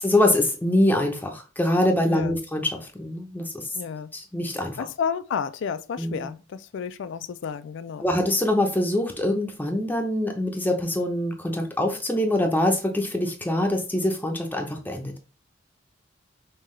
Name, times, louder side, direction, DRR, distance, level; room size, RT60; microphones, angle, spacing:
voice 1, 0.0-3.7 4.1-4.8 6.0-6.1 8.0-15.2, left 1 dB, 10° left, 0.6 m, -24 dB
voice 2, 3.7-4.1 4.8-8.1, left 6 dB, 65° left, 0.3 m, -31 dB
5.4 x 2.3 x 3.1 m
head